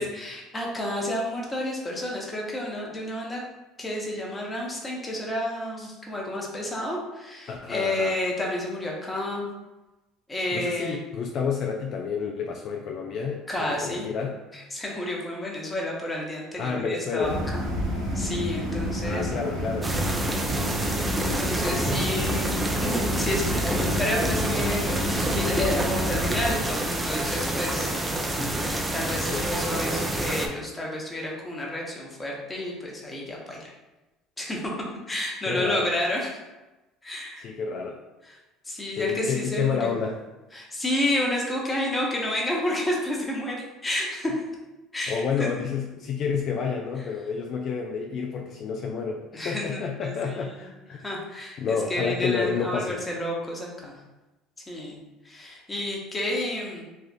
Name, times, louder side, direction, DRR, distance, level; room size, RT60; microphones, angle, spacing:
voice 1, 0.0-3.4 3.8-9.5 10.3-11.0 13.5-14.1 14.5-17.6 18.1-19.3 21.1-22.5 22.8-27.9 28.9-33.7 34.4-34.6 35.1-36.3 37.0-37.4 38.3-38.4 38.7-39.9 40.5-43.6 43.8-44.3 44.9-45.5 49.3-50.7 51.0-54.0 54.7-55.0 55.2-56.8, left 1 dB, 20° left, -2 dB, 0.9 m, -30 dB
voice 2, 7.5-8.2 10.5-14.4 16.6-17.4 19.0-19.9 29.1-29.4 35.5-35.9 37.4-38.0 39.0-40.2 45.1-51.1 51.6-53.0, left 6 dB, 55° left, 1 dB, 0.3 m, -29 dB
sound 1, 17.2-26.6, equal, 75° right, 1.1 m, -29 dB
sound 2, 19.8-30.5, right 1 dB, 15° right, 0.5 m, -28 dB
3.4 x 2.4 x 2.6 m, 1.1 s
supercardioid pair, 80°, 0 cm